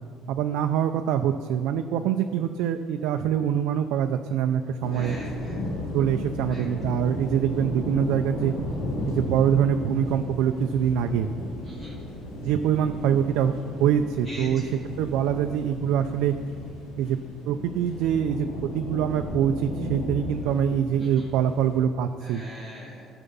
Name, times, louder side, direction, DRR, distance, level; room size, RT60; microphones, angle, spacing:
voice 1, 0.3-5.2 5.9-8.5 9.1-11.3 12.4-13.5 13.8-14.6 15.0-16.4 17.0-17.2 17.5-22.4, right 9 dB, 80° right, 6 dB, 0.5 m, -24 dB
sound 1, 4.8-21.8, left 2 dB, 90° left, 3.0 m, -35 dB
voice 2, 4.9-5.7 6.5-6.7 11.6-12.0 14.3-14.8 21.0-21.3 22.2-23.1, equal, 20° left, -7 dB, 2.4 m, -41 dB
13.5 x 7.0 x 5.5 m, 2.4 s
cardioid pair, 135°, 0 cm